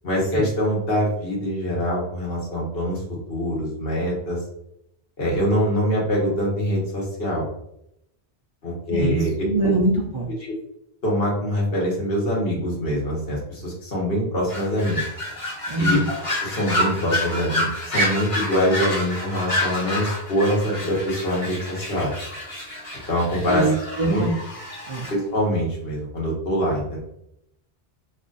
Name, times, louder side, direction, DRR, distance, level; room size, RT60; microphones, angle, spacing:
voice 1, 0.0-3.0 3.3-4.4 5.2-7.5 8.6-9.3 10.4-10.5 11.0-15.0 15.8-16.0 16.4-22.1 23.1-24.2 25.1-27.0, equal, 65° left, -3 dB, 1.4 m, -24 dB
voice 2, 8.9-10.3 15.7-16.1 23.5-24.3 24.9-25.1, right 2 dB, 40° right, -2 dB, 0.4 m, -23 dB
sound 1, 14.5-25.1, left 1 dB, 35° left, 1.0 m, -28 dB
3.0 x 2.4 x 3.9 m, 0.78 s
omnidirectional pair, 1.1 m